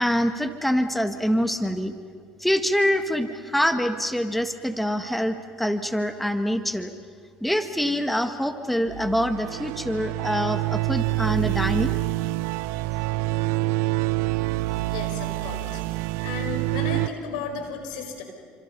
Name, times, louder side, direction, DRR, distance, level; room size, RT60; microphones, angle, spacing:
voice 1, 0.0-1.9 2.4-6.9 7.4-12.0, equal, ahead, 8 dB, 1.6 m, -25 dB
sound 1, 8.9-17.1, right 17 dB, 75° right, 0.7 m, -26 dB
voice 2, 14.9-15.8 16.2-18.2, left 4 dB, 85° left, 4 dB, 5.4 m, -34 dB
30.0 x 26.0 x 5.6 m, 2.2 s
supercardioid pair, 85°, 4 cm